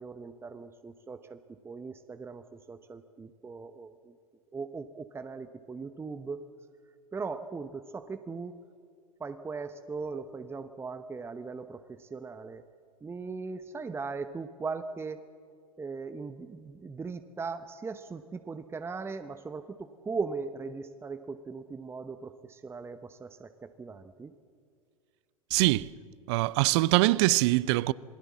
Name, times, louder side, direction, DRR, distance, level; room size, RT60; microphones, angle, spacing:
voice 1, 0.0-1.4 1.6-4.1 4.5-6.4 7.1-8.5 9.2-12.6 13.0-15.2 15.8-24.3, right 4 dB, 15° right, 0.9 m, -39 dB
voice 2, 25.5-25.9 26.3-27.9, right 20 dB, 50° right, 0.6 m, -23 dB
27.5 x 20.0 x 7.4 m
figure-of-eight pair, 90°, 18 cm